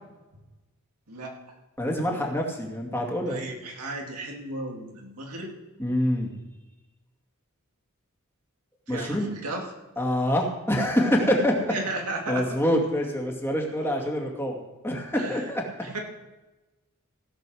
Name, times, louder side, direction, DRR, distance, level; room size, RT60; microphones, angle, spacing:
voice 1, 1.1-1.6 3.3-5.5 8.9-9.7 11.7-12.6 13.7-14.1 15.1-16.0, right 2 dB, 85° right, 0 dB, 2.4 m, -35 dB
voice 2, 1.8-3.4 5.8-6.3 8.9-9.3 10.0-11.7 12.3-14.6 14.8-15.6, equal, 10° left, 0 dB, 2.2 m, -25 dB
16.5 x 6.8 x 6.3 m, 1.1 s
head